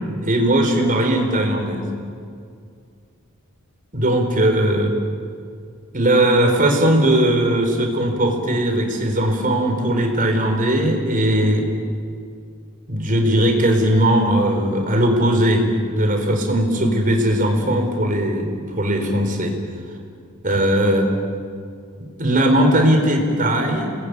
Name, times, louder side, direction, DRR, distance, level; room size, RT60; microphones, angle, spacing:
voice 1, 0.2-1.9 3.9-4.9 5.9-11.6 12.9-19.5 20.4-21.1 22.0-24.0, right 1 dB, 40° right, 4 dB, 4.4 m, -18 dB
28.5 x 21.5 x 9.6 m, 2.3 s
head